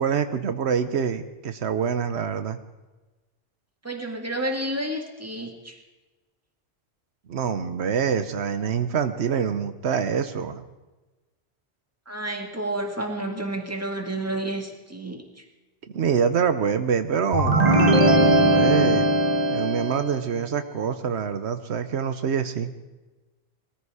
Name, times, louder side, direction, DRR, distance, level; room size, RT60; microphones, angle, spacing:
voice 1, 0.0-2.6 7.3-10.6 15.9-19.1 19.5-22.7, right 7 dB, 90° right, 10 dB, 1.2 m, -25 dB
voice 2, 3.8-5.8 12.1-15.5, right 1 dB, 15° right, 3 dB, 1.9 m, -30 dB
sound 1, 17.3-20.1, right 1 dB, 40° right, 1.4 m, -19 dB
19.5 x 14.0 x 4.9 m, 1.1 s
omnidirectional pair, 1.1 m